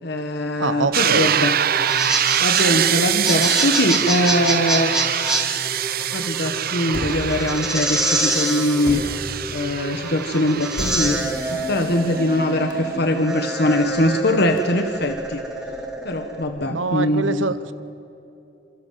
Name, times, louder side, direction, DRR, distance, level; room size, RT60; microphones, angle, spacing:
voice 1, 0.0-1.5 2.4-4.9 6.1-9.0 9.5-15.4 16.0-17.4, left 1 dB, 60° left, 6 dB, 1.6 m, -22 dB
voice 2, 0.6-1.3 16.7-17.7, right 3 dB, 80° right, 13 dB, 1.1 m, -24 dB
sound 1, 0.9-12.6, right 10 dB, 50° right, 0.8 m, -24 dB
sound 2, 1.7-16.4, right 1 dB, 5° right, 3.9 m, -27 dB
sound 3, 6.9-8.3 8.8-14.6, left 1 dB, 75° left, 3.5 m, -36 dB
29.0 x 26.5 x 7.7 m, 2.8 s
head